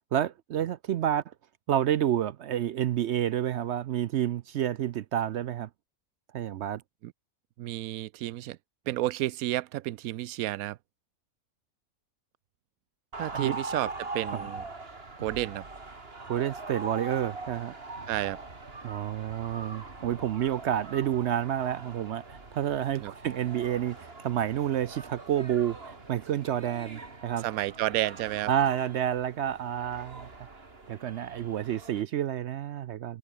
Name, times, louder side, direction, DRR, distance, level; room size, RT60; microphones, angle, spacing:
voice 1, 0.1-1.2 1.7-5.7 6.3-6.8 13.3-13.6 14.3-14.4 16.3-17.7 18.8-27.5 28.5-30.3 30.9-33.2, right 10 dB, 65° right, 0.7 m, -29 dB
voice 2, 7.6-8.6 8.9-10.8 13.2-14.6 15.2-15.6 18.1-18.4 23.0-23.1 27.4-28.5, right 15 dB, 85° right, 1.0 m, -31 dB
sound 1, 13.1-32.0, right 3 dB, 45° right, 3.0 m, -42 dB
omnidirectional pair, 1.5 m